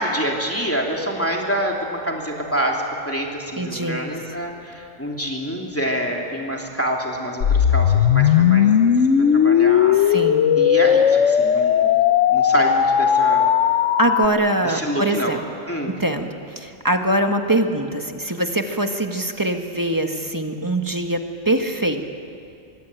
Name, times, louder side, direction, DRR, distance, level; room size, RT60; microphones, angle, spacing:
voice 1, 0.0-8.9 9.3-10.1 10.6-11.9 12.3-13.5 14.6-15.4 15.7-16.0, equal, 10° left, -1 dB, 3.0 m, -26 dB
voice 2, 3.6-4.1 9.9-10.6 14.0-15.4 15.9-16.3 16.5-22.1, right 1 dB, 15° right, 5 dB, 1.6 m, -23 dB
sound 1, 7.4-14.3, left 8 dB, 90° left, 1.2 m, -17 dB
24.5 x 23.5 x 9.0 m, 2.6 s
omnidirectional pair, 1.2 m